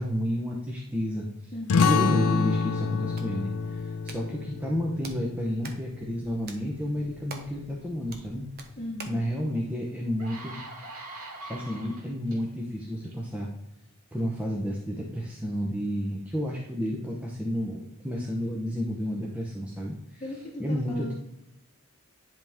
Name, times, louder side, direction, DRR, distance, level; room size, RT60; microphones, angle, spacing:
voice 1, 0.0-1.5 1.8-8.5 9.1-10.6 11.5-13.5 14.1-20.2 20.6-21.1, equal, 5° right, -2 dB, 0.7 m, -31 dB
voice 2, 1.5-2.0 8.8-9.2 20.2-21.1, equal, 30° left, -3 dB, 1.0 m, -37 dB
sound 1, 1.7-6.9, left 5 dB, 85° left, 0.4 m, -28 dB
Hands, 2.8-9.3, right 4 dB, 45° right, 0.9 m, -48 dB
sound 2, 9.4-9.5 10.0-12.4 13.0-13.3, right 2 dB, 75° right, 2.0 m, -42 dB
10.5 x 3.5 x 3.5 m, 0.86 s
head